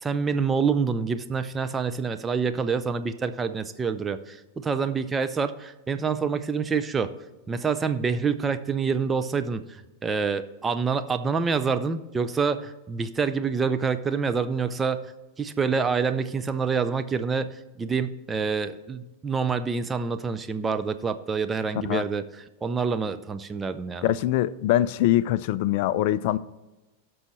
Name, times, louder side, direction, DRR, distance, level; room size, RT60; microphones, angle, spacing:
voice 1, 0.0-7.1 7.5-15.1 15.4-22.2 22.6-24.1, right 5 dB, 15° right, 0.5 m, -27 dB
voice 2, 24.0-26.4, left 13 dB, 50° left, 0.3 m, -23 dB
17.0 x 6.2 x 3.2 m
figure-of-eight pair, 90°, 0 cm